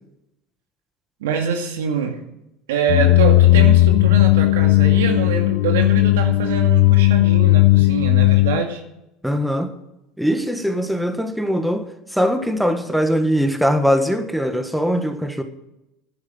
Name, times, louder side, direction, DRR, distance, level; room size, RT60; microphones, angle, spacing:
voice 1, 1.2-2.2 2.7-8.8, right 6 dB, 90° right, 2.3 m, -24 dB
sound 1, 2.9-8.6, left 18 dB, 80° left, 0.4 m, -15 dB
voice 2, 9.2-9.7 10.2-15.4, equal, ahead, 1.5 m, -21 dB
11.0 x 9.8 x 7.7 m
supercardioid pair, 100°, 0 cm